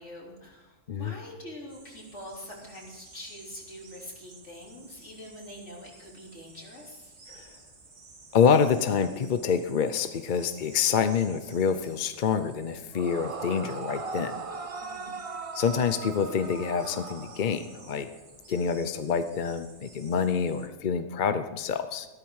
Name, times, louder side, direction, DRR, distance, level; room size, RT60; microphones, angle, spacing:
voice 1, 0.0-7.2 14.8-15.1, left 1 dB, 65° left, -3 dB, 3.7 m, -45 dB
sound 1, 1.7-20.7, right 3 dB, 60° right, 2.5 m, -53 dB
voice 2, 8.3-14.4 15.5-18.1 18.5-22.1, left 6 dB, 50° left, 10 dB, 0.7 m, -27 dB
Yell / Screaming, 12.9-17.8, right 4 dB, 35° right, 0.7 m, -38 dB
14.0 x 13.0 x 4.8 m, 1.2 s
omnidirectional pair, 1.3 m